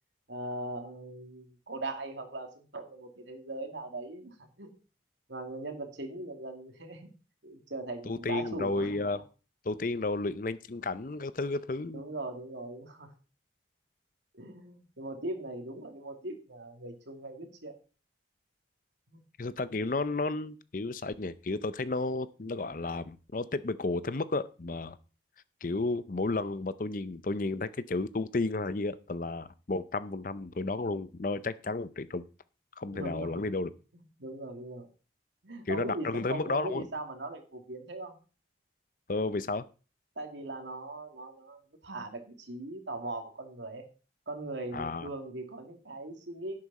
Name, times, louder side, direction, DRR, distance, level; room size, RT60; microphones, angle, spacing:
voice 1, 0.3-4.7 5.3-7.1 7.4-9.2 11.9-13.1 14.3-17.7 19.1-19.2 32.9-33.5 33.9-34.9 35.4-38.2 40.2-43.8 44.3-46.5, right 2 dB, 75° right, 4 dB, 2.5 m, -40 dB
voice 2, 8.1-9.2 9.6-12.0 19.4-25.0 25.6-32.3 32.8-33.7 35.7-36.9 39.1-39.6 44.7-45.1, left 3 dB, 45° left, 15 dB, 0.6 m, -32 dB
11.0 x 8.7 x 4.2 m, 0.35 s
head